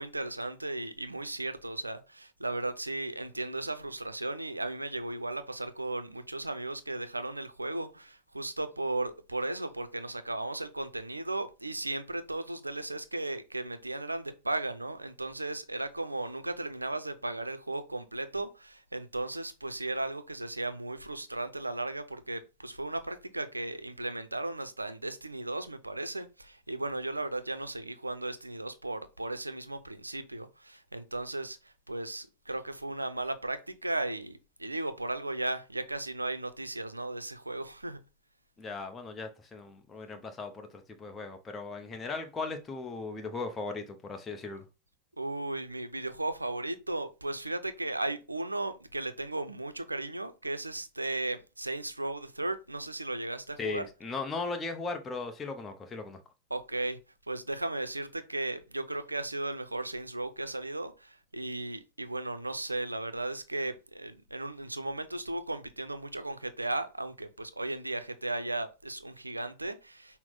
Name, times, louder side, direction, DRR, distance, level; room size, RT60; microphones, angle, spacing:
voice 1, 0.0-38.0 45.2-53.8 56.5-57.0 57.3-70.2, right 2 dB, 85° right, 0.5 m, -36 dB
voice 2, 38.6-44.6 53.6-56.2, left 3 dB, 20° left, 0.6 m, -37 dB
5.8 x 2.0 x 3.8 m
figure-of-eight pair, 90°, 0 cm